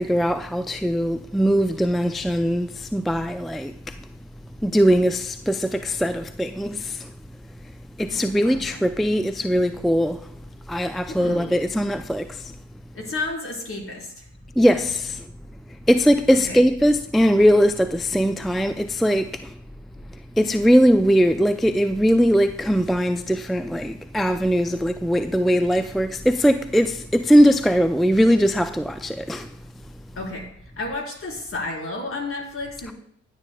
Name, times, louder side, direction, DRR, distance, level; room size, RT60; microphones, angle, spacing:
voice 1, 0.0-3.7 4.6-7.1 8.0-10.3 10.7-12.4 14.6-15.2 15.9-19.5 20.4-29.5, equal, ahead, 0.3 m, -20 dB
voice 2, 8.1-8.8 11.2-11.6 12.9-14.3 16.3-16.6 30.2-30.5 30.8-32.9, left 2 dB, 45° left, 3.9 m, -32 dB
15.0 x 9.0 x 2.2 m
cardioid pair, 90°, 30 cm